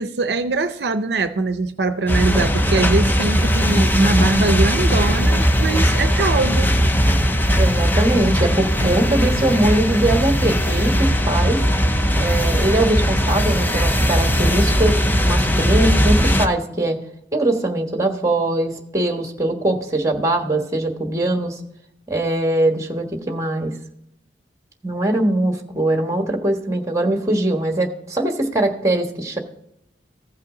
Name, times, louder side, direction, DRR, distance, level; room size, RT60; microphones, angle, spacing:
voice 1, 0.0-6.7 8.9-9.0, right 3 dB, 70° right, 0.6 m, -22 dB
sound 1, 2.1-16.5, equal, 10° left, 0.6 m, -18 dB
voice 2, 7.6-11.6 12.2-17.0 17.3-21.6 22.1-23.7 24.8-29.4, right 1 dB, 20° right, 1.4 m, -21 dB
15.5 x 5.7 x 3.8 m
head